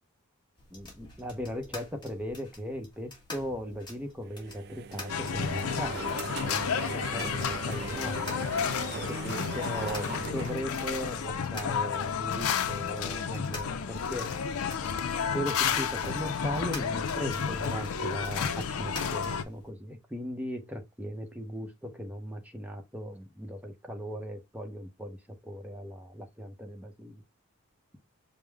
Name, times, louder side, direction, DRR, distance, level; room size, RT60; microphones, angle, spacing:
sound 1, 0.6-19.7, left 2 dB, 20° left, 1.4 m, -48 dB
voice 1, 0.7-8.4 8.9-14.3 15.3-27.2, equal, 5° right, 0.7 m, -38 dB
sound 2, 4.2-11.5, right 6 dB, 50° right, 0.3 m, -40 dB
sound 3, 5.1-19.4, left 7 dB, 80° left, 0.5 m, -31 dB
5.2 x 2.1 x 3.4 m
head